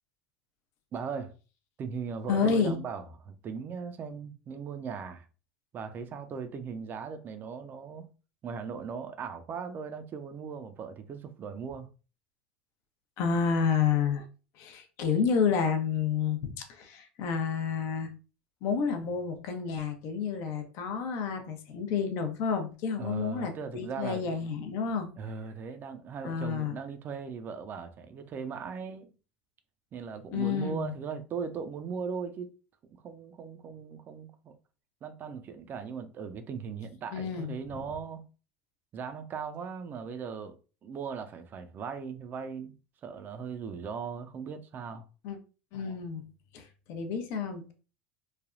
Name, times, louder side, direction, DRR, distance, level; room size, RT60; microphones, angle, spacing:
voice 1, 0.9-1.3 1.8-5.3 5.7-8.1 8.4-11.9 23.0-24.2 25.2-29.1 29.9-32.5 32.9-34.6 35.0-38.3 38.9-40.6 40.8-42.7 43.0-45.1, right 6 dB, 35° right, 0.5 m, -38 dB
voice 2, 2.3-2.8 13.2-14.2 14.6-18.1 18.6-25.1 26.2-26.8 30.3-30.9 37.1-37.8 45.2-45.4 45.7-46.2 46.5-47.7, left 6 dB, 55° left, 0.7 m, -30 dB
3.3 x 2.2 x 2.5 m
hypercardioid pair, 90°, 6 cm